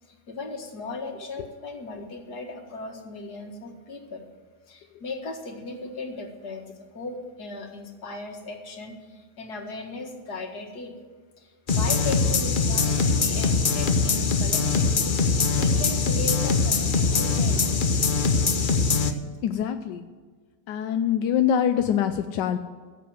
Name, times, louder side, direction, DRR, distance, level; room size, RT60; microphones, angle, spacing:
voice 1, 0.0-4.3 4.7-10.9 11.4-17.6, left 3 dB, 65° left, 3 dB, 2.3 m, -37 dB
sound 1, 11.7-19.1, left 4 dB, 40° left, 0.8 m, -22 dB
voice 2, 19.4-20.1 20.7-22.6, left 9 dB, 90° left, 8 dB, 1.3 m, -24 dB
14.5 x 7.6 x 7.8 m, 1.5 s
omnidirectional pair, 1.9 m